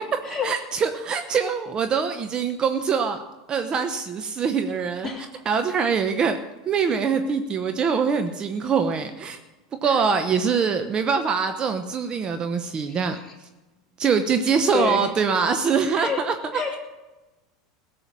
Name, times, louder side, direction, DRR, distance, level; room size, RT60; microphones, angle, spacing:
voice 1, 0.0-3.2 3.5-5.1 5.5-6.4 6.7-9.4 9.8-13.2 14.0-16.3, right 6 dB, 35° right, 8 dB, 0.9 m, -23 dB
voice 2, 5.0-5.4 5.8-5.9 9.8-10.0 12.9-13.3 14.7-15.1 16.0-16.2 16.5-16.8, left 6 dB, 20° left, -2 dB, 3.5 m, -30 dB
16.5 x 6.9 x 7.4 m, 1.1 s
hypercardioid pair, 90°, 3 cm